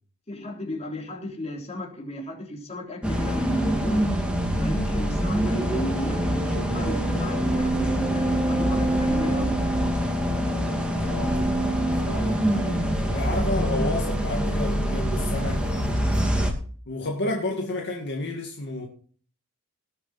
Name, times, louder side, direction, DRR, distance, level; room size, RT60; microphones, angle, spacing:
voice 1, 0.3-4.0 4.6-9.6, left 1 dB, 30° left, 3.6 m, -35 dB
sound 1, 3.0-16.5, equal, 5° right, 2.4 m, -24 dB
voice 2, 11.0-15.6 16.9-18.9, left 2 dB, 55° left, 2.1 m, -31 dB
19.0 x 7.2 x 4.3 m
head